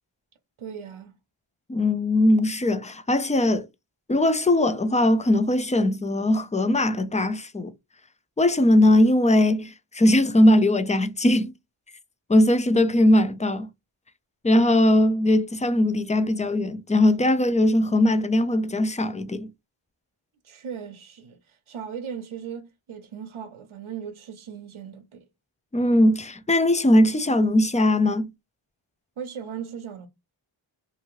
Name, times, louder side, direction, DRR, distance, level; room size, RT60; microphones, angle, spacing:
voice 1, 0.6-1.1 20.4-25.2 29.2-30.1, right 7 dB, 80° right, 0.7 m, -38 dB
voice 2, 1.7-3.7 4.1-7.7 8.4-11.5 12.3-13.7 14.4-19.5 25.7-28.3, left 1 dB, 15° left, 0.5 m, -20 dB
2.7 x 2.6 x 3.0 m
wide cardioid pair, 40°, 48 cm